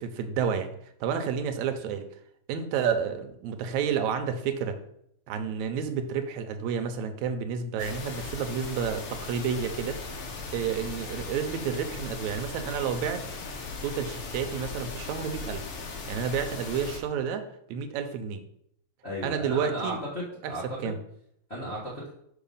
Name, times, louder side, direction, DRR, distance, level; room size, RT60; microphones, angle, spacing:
voice 1, 0.0-2.1 2.5-4.8 5.3-10.0 10.5-13.4 13.8-15.8 16.1-17.4 17.7-18.4 19.2-20.0 20.4-21.0, right 7 dB, 80° right, 7 dB, 2.0 m, -30 dB
sound 1, 7.8-17.0, left 3 dB, 65° left, 1.5 m, -38 dB
voice 2, 19.0-20.9 21.5-22.1, equal, 45° left, -6 dB, 0.8 m, -35 dB
4.9 x 4.7 x 5.4 m, 0.73 s
omnidirectional pair, 3.4 m